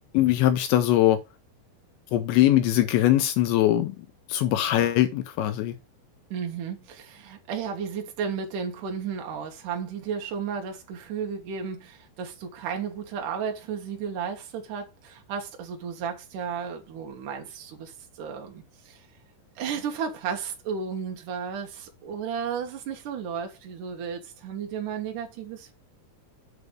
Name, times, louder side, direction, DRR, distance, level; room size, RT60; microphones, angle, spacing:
voice 1, 0.1-1.2 2.1-4.0 4.3-5.7, left 13 dB, 85° left, 2.8 m, -21 dB
voice 2, 6.3-19.1 19.6-25.7, right 7 dB, 70° right, 2.0 m, -33 dB
8.1 x 3.4 x 6.5 m
omnidirectional pair, 5.7 m